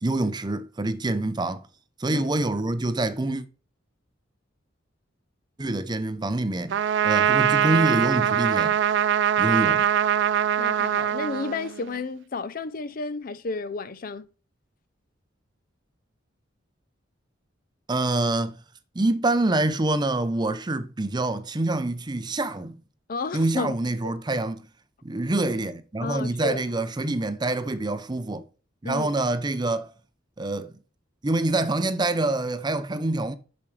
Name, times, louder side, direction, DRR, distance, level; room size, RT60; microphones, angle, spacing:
voice 1, 0.0-1.6 2.0-3.4 5.6-8.8 9.4-9.9 17.9-18.6 18.9-22.8 23.3-24.7 25.0-28.4 28.8-29.9 30.4-30.7 31.2-33.3, right 2 dB, 25° right, 0.6 m, -26 dB
Trumpet, 6.7-12.0, right 9 dB, 65° right, 0.3 m, -22 dB
voice 2, 10.6-14.3 23.1-23.7 24.0-24.1 26.0-26.6 28.8-29.1, left 4 dB, 50° left, 0.5 m, -32 dB
7.0 x 6.0 x 3.2 m
head